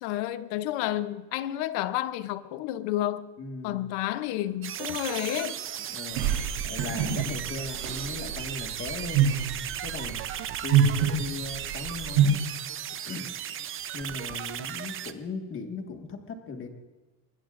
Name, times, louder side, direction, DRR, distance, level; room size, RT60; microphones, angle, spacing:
voice 1, 0.0-3.3 3.6-5.6, left 13 dB, 65° left, 0.9 m, -30 dB
voice 2, 3.4-3.9 5.9-9.3 9.8-10.2 10.6-12.5 13.1-13.3 13.9-16.7, left 3 dB, 25° left, 1.8 m, -38 dB
sound 1, 4.6-15.1, right 10 dB, 30° right, 0.6 m, -36 dB
sound 2, 6.2-12.2, right 8 dB, 70° right, 3.8 m, -26 dB
24.5 x 20.5 x 2.5 m
cardioid pair, 150°, 46 cm